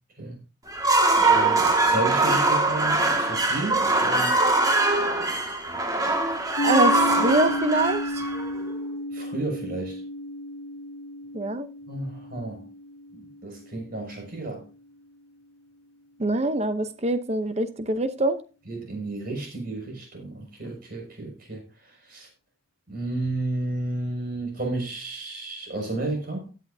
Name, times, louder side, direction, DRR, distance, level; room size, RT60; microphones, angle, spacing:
sound 1, 0.7-8.8, right 2 dB, 20° right, 1.9 m, -22 dB
voice 1, 1.3-4.3 9.1-10.0 11.9-12.7 13.1-14.6 18.7-21.6 22.1-22.3 22.9-26.5, right 2 dB, 50° right, 5.9 m, -32 dB
sound 2, 6.6-14.4, left 1 dB, 80° left, 0.8 m, -33 dB
voice 2, 6.6-8.2 11.3-11.7 16.2-18.4, right 2 dB, 35° right, 0.8 m, -24 dB
16.0 x 8.4 x 2.7 m
head